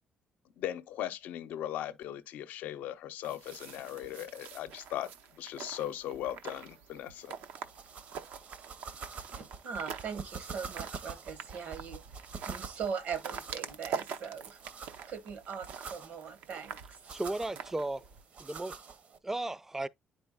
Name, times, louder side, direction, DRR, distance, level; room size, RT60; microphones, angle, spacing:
voice 1, 0.6-5.1 5.4-7.3, left 12 dB, 85° left, 0.6 m, -38 dB
sound 1, 3.2-18.2, right 7 dB, 90° right, 0.6 m, -45 dB
sound 2, 7.2-19.2, right 5 dB, 55° right, 0.8 m, -47 dB
voice 2, 9.3-12.0 12.5-14.6 15.1-17.1, right 6 dB, 70° right, 1.1 m, -40 dB
voice 3, 17.1-18.0 18.4-18.8 19.2-19.9, right 2 dB, 15° right, 0.4 m, -35 dB
10.0 x 4.4 x 2.2 m
cardioid pair, 100°, 3 cm